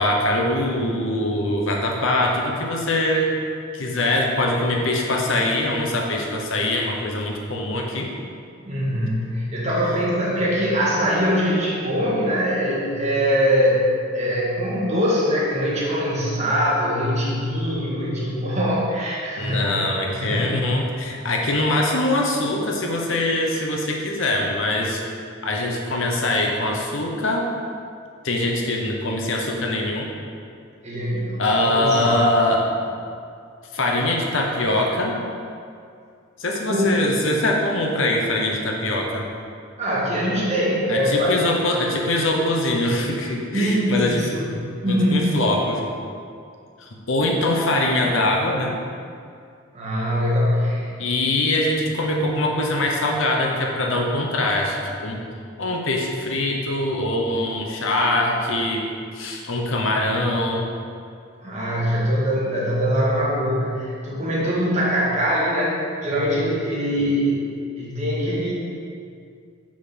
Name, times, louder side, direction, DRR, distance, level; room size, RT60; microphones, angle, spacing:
voice 1, 0.0-3.4 3.7-8.1 19.4-25.0 25.4-27.5 28.2-30.1 31.4-32.7 33.7-35.2 36.4-39.3 40.9-44.4 44.8-45.8 46.8-48.8 51.0-55.2 55.6-58.8 59.1-60.7, left 1 dB, 65° left, 0 dB, 0.9 m, -23 dB
voice 2, 8.7-13.8 14.1-19.6 20.2-20.6 30.8-32.2 36.7-37.0 39.8-41.4 43.5-44.5 44.8-45.3 49.7-51.0 61.4-67.4 67.8-68.5, equal, 30° right, -7 dB, 1.6 m, -22 dB
6.3 x 3.8 x 6.0 m, 2.4 s
head